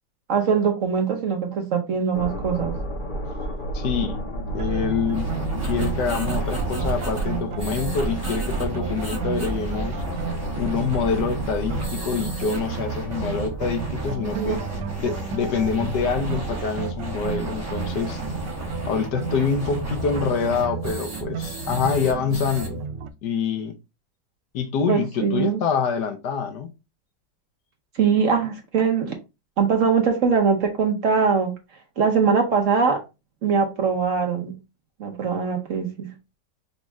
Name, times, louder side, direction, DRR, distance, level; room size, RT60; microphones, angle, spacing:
voice 1, 0.3-2.8 14.3-14.6 24.9-25.6 27.9-29.2 29.6-31.6 32.0-33.0 33.4-34.5 35.0-36.1, right 6 dB, 60° right, 1.0 m, -22 dB
sound 1, 2.1-18.8, right 1 dB, 40° left, 0.8 m, -33 dB
voice 2, 3.7-4.2 4.5-5.3 5.6-10.0 10.6-14.6 15.0-18.2 18.9-22.8 23.2-23.8 24.5-26.7, left 6 dB, 75° left, 1.3 m, -26 dB
sound 2, 4.5-23.1, right 6 dB, 85° right, 1.2 m, -33 dB
sound 3, 5.1-22.7, right 2 dB, 15° right, 0.7 m, -34 dB
5.2 x 2.4 x 3.2 m
omnidirectional pair, 1.8 m